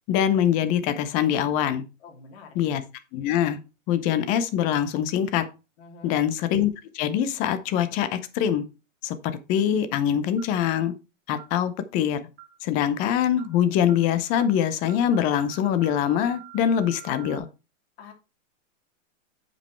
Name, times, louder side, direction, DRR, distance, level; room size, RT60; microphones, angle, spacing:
voice 1, 0.1-1.8 2.6-2.8 3.1-3.6 3.9-5.4 6.0-8.6 9.0-9.2 9.5-10.9 11.3-12.2 12.6-17.5, left 9 dB, 20° left, 0.6 m, -23 dB
voice 2, 2.0-2.6 5.8-6.2 18.0-18.1, left 4 dB, 50° left, 3.1 m, -46 dB
sound 1, 10.4-10.7 11.4-11.6 12.4-12.7 13.4-13.6 13.9-14.1 14.4-14.6 14.9-17.4, right 17 dB, 25° right, 1.1 m, -47 dB
8.4 x 5.4 x 4.4 m
hypercardioid pair, 155°, 39 cm